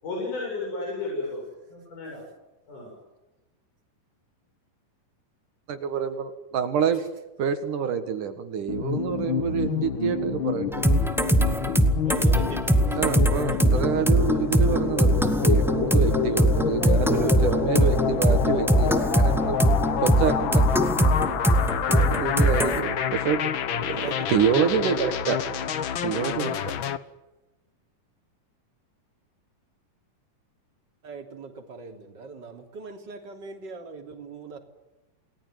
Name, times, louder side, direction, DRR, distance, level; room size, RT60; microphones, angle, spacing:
voice 1, 0.0-1.4 1.7-2.2 2.7-2.9, left 3 dB, 65° left, -1 dB, 9.3 m, -32 dB
voice 2, 5.7-7.0 7.4-10.8 13.0-19.6 20.0-20.7 21.9-23.4 23.7-24.0 24.3-25.4 26.0-26.6, right 7 dB, 70° right, 8 dB, 3.1 m, -27 dB
sound 1, 8.7-27.0, left 9 dB, 80° left, 1.1 m, -28 dB
sound 2, 10.7-22.8, right 1 dB, ahead, 0.7 m, -22 dB
voice 3, 11.8-13.0 13.5-14.0 23.9-24.6 25.5-25.8 31.0-34.6, right 3 dB, 30° right, 4 dB, 3.5 m, -41 dB
29.0 x 19.5 x 9.4 m, 1.0 s
omnidirectional pair, 3.9 m